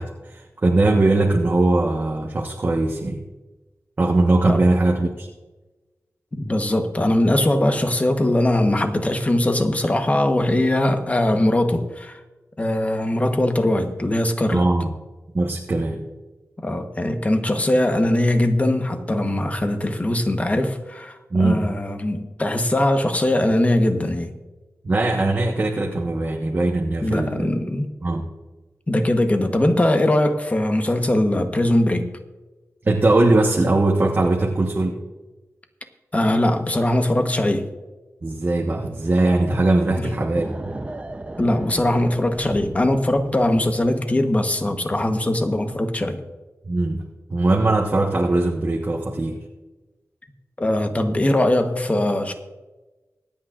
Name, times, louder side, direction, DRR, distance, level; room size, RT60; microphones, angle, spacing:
voice 1, 0.0-3.2 4.0-5.3 14.5-14.9 15.3-16.0 21.3-21.7 24.8-27.5 28.0-28.3 32.8-35.0 38.2-40.7 46.6-47.0 47.3-49.4, right 2 dB, 40° right, 0 dB, 1.2 m, -20 dB
voice 2, 6.3-12.2 12.6-14.7 16.6-24.3 27.0-27.9 28.9-32.1 36.1-37.7 39.9-40.1 41.4-46.2 50.6-52.3, left 1 dB, 25° left, 6 dB, 1.1 m, -21 dB
sound 1, 40.3-44.1, right 2 dB, 25° right, 0.7 m, -36 dB
25.0 x 8.6 x 2.5 m, 1.1 s
wide cardioid pair, 115°, 5 cm